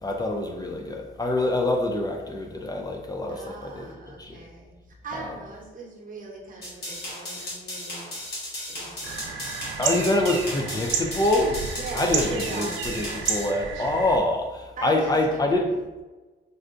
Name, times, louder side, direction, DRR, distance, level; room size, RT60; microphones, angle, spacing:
voice 1, 0.0-4.4 5.1-5.3 9.8-15.7, left 2 dB, 20° left, 1 dB, 0.3 m, -26 dB
voice 2, 3.3-4.7 5.0-8.2 8.7-11.0 11.7-13.3 14.8-15.7, right 3 dB, 45° right, -2 dB, 0.9 m, -40 dB
sound 1, 6.6-13.5, left 1 dB, 50° left, 1.5 m, -36 dB
sound 2, 9.0-14.2, right 6 dB, 75° right, 0.4 m, -31 dB
3.7 x 2.2 x 2.4 m, 1.2 s
cardioid pair, 90°, 20 cm